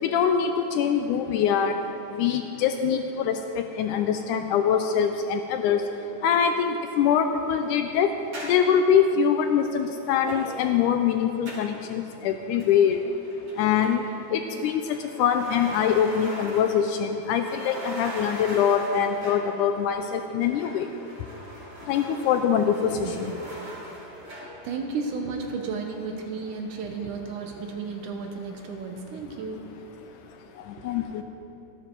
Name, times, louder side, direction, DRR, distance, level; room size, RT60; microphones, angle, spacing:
voice 1, 0.0-1.8 2.1-8.2 8.4-13.2 13.6-20.9 21.2-21.3 21.8-23.3 24.4-24.5 30.6-31.2, left 7 dB, 80° left, 6 dB, 1.9 m, -24 dB
sound 1, 8.3-8.7 10.3-10.7 11.5-11.8 12.6-13.0 13.2-14.4 14.9-16.9 17.2-19.5 20.4-24.6, right 1 dB, 55° right, 4.1 m, -40 dB
voice 2, 22.8-23.2 24.6-29.8 30.1-30.3 30.8-31.1, right 4 dB, 70° right, 3 dB, 2.3 m, -34 dB
13.5 x 11.5 x 4.6 m, 2.9 s
omnidirectional pair, 3.9 m